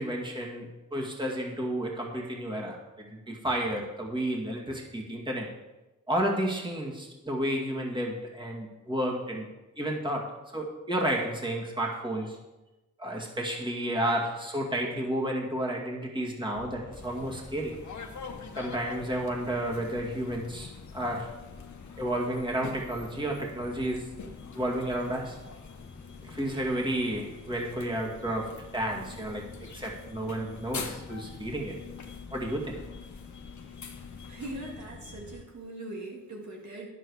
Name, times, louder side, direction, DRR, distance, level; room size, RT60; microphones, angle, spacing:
voice 1, 0.0-5.5 6.1-9.5 9.8-12.4 13.0-17.8 18.6-21.3 22.0-24.1 24.5-25.4 26.2-29.5 29.7-31.8 32.3-32.8, right 1 dB, 15° right, -1 dB, 2.2 m, -31 dB
sound 1, 16.5-35.4, left 3 dB, 35° left, 1.2 m, -48 dB
sound 2, 16.9-34.8, left 6 dB, 70° left, 1.2 m, -46 dB
voice 2, 34.3-36.9, right 2 dB, 70° right, -1 dB, 2.1 m, -41 dB
10.0 x 7.9 x 4.9 m, 1.1 s
cardioid pair, 55°, 30 cm